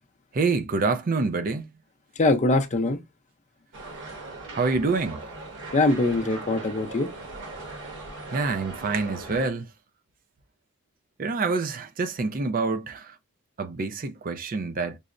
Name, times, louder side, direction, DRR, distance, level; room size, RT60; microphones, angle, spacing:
voice 1, 0.3-1.8 4.5-5.3 8.3-9.7 11.2-13.2 13.6-15.0, right 4 dB, 40° right, 0.4 m, -27 dB
voice 2, 2.2-3.0 5.7-7.1, left 2 dB, 30° left, 0.5 m, -22 dB
sound 1, 3.7-9.5, right 2 dB, 55° right, 1.2 m, -39 dB
5.4 x 2.0 x 2.4 m
head